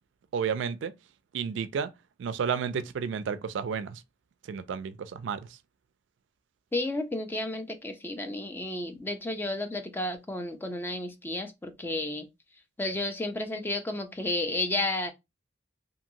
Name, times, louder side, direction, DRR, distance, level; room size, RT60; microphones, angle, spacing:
voice 1, 0.3-0.9 1.3-1.9 2.2-4.0 4.5-5.5, right 6 dB, 80° right, 0.3 m, -31 dB
voice 2, 6.7-12.3 12.8-15.1, left 2 dB, 10° left, 0.4 m, -32 dB
2.8 x 2.6 x 2.6 m
head